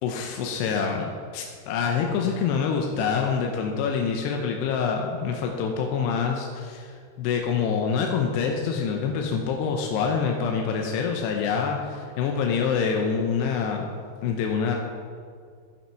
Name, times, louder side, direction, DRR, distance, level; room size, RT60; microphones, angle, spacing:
voice 1, 0.0-13.9 14.2-14.8, left 6 dB, 80° left, 1 dB, 2.6 m, -26 dB
14.0 x 5.7 x 5.7 m, 2.1 s
omnidirectional pair, 5.5 m